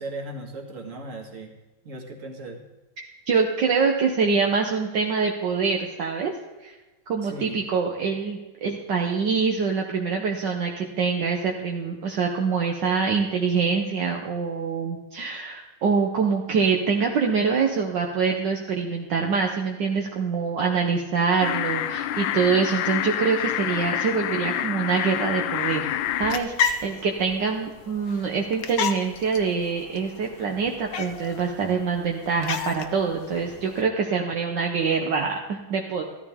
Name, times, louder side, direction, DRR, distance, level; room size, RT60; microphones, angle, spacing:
voice 1, 0.0-1.5 1.8-2.6 7.2-7.6, right 2 dB, 40° right, 2 dB, 2.0 m, -37 dB
voice 2, 3.0-6.3 6.6-6.7 7.1-25.9 26.2-36.0, right 5 dB, 65° right, 1 dB, 1.6 m, -25 dB
sound 1, 21.4-26.4, left 12 dB, 75° left, 1.2 m, -27 dB
sound 2, 26.0-33.8, left 6 dB, 60° left, 1.1 m, -33 dB
14.5 x 13.0 x 3.6 m, 1.2 s
omnidirectional pair, 2.2 m